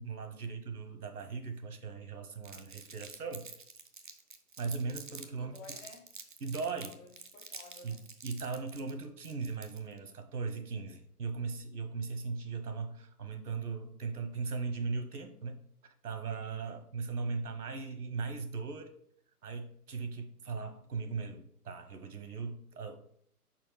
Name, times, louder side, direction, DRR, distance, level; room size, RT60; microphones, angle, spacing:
voice 1, 0.0-3.5 4.6-5.6 6.4-6.9 7.8-8.0 8.2-18.9 19.4-23.0, right 4 dB, 75° right, 8 dB, 1.2 m, -38 dB
Crumpling crinkling, 2.4-5.3 5.5-10.0, right 5 dB, 35° right, 0.4 m, -48 dB
voice 2, 5.3-6.1 6.7-8.0, left 4 dB, 55° left, 4 dB, 1.5 m, -53 dB
4.9 x 4.4 x 4.8 m, 0.65 s
figure-of-eight pair, 145°, 46 cm